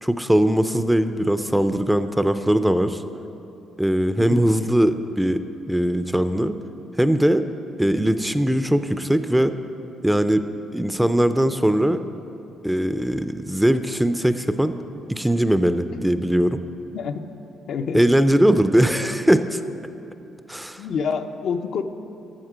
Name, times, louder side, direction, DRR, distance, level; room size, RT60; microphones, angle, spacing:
voice 1, 0.0-3.0 3.8-5.4 5.7-6.6 7.0-7.5 7.8-9.5 10.0-10.4 10.7-12.0 12.6-14.8 15.1-16.6 17.9-19.6 20.5-20.8, right 1 dB, 5° right, 10 dB, 0.4 m, -20 dB
voice 2, 17.7-18.0 20.8-21.8, left 6 dB, 70° left, 6 dB, 0.5 m, -27 dB
12.5 x 7.2 x 5.0 m, 2.8 s
cardioid pair, 90°, 0 cm